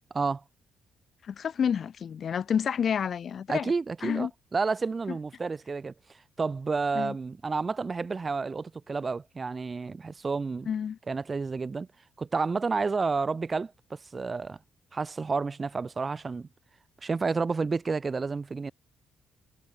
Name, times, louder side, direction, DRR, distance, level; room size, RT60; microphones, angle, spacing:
voice 1, 1.3-3.7 4.0-4.3 5.1-5.2 6.9-7.1 10.7-11.0, left 7 dB, 55° left, 1.9 m, -29 dB
voice 2, 3.5-5.9 6.4-10.7 11.1-11.9 12.2-14.6 14.9-16.5 17.0-18.7, right 4 dB, 30° right, 1.7 m, -30 dB
cardioid pair, 90°, 0 cm